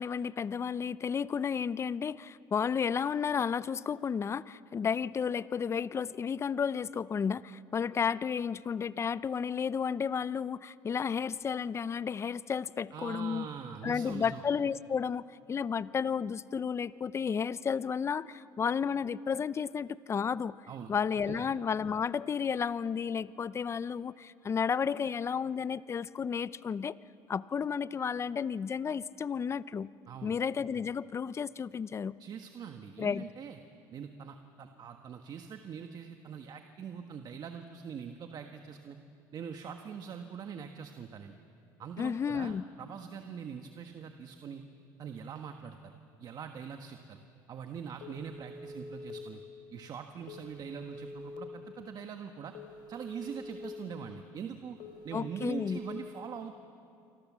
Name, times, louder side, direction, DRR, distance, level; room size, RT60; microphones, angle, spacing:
voice 1, 0.0-13.5 13.8-15.2 15.5-20.5 20.9-27.0 27.3-29.9 30.2-32.2 33.0-33.3 42.0-42.6 55.1-55.8, left 6 dB, 30° left, 17 dB, 0.6 m, -32 dB
voice 2, 12.9-14.4 20.7-20.9 21.2-21.5 30.1-30.4 32.2-33.6 33.9-39.0 39.3-41.4 41.8-44.6 45.0-45.9 46.2-47.2 47.5-49.4 49.7-52.5 52.9-54.8 55.0-56.5, right 7 dB, 45° right, 6 dB, 1.5 m, -43 dB
Telephone, 48.0-49.1 50.3-51.4 52.5-53.6 54.8-55.9, left 1 dB, 70° left, 4.1 m, -46 dB
28.5 x 24.5 x 7.5 m, 2.6 s
supercardioid pair, 100°, 9 cm